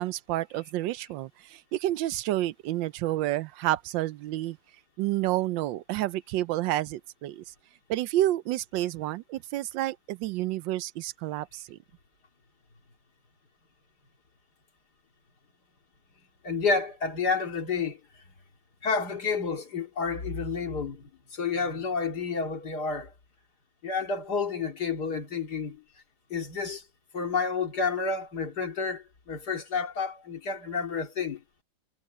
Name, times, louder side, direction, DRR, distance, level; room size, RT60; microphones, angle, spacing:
voice 1, 0.0-4.6 5.0-7.4 7.9-11.8, right 15 dB, 85° right, 1.3 m, -29 dB
voice 2, 16.4-18.0 18.8-23.1 23.8-25.8 26.3-26.8 27.1-31.4, left 5 dB, 60° left, 2.9 m, -30 dB
omnidirectional pair, 2.0 m